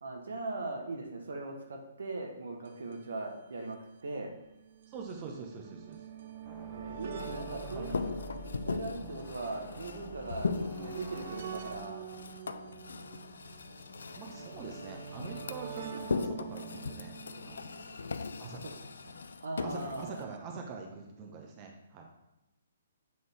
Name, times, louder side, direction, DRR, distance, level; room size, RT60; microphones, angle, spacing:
voice 1, 0.0-4.3 6.7-8.0 8.7-12.1 18.6-18.7 19.4-20.3, right 2 dB, 70° right, 2 dB, 1.0 m, -40 dB
sound 1, 2.7-2.8 2.9-3.0 3.9-19.1 20.1-20.2 20.4-20.5, right 8 dB, 55° right, 0.5 m, -47 dB
voice 2, 4.9-6.0 7.5-7.9 9.0-9.2 14.2-17.1 17.4-17.7 18.4-18.8 19.0-19.2 19.6-22.1, right 5 dB, 30° right, 1 dB, 0.9 m, -44 dB
sound 2, 6.4-11.8, equal, 5° right, 1.2 m, -48 dB
sound 3, 7.2-20.2, left 4 dB, 70° left, 0.3 m, -39 dB
7.8 x 3.9 x 3.4 m, 0.99 s
figure-of-eight pair, 130°, 0 cm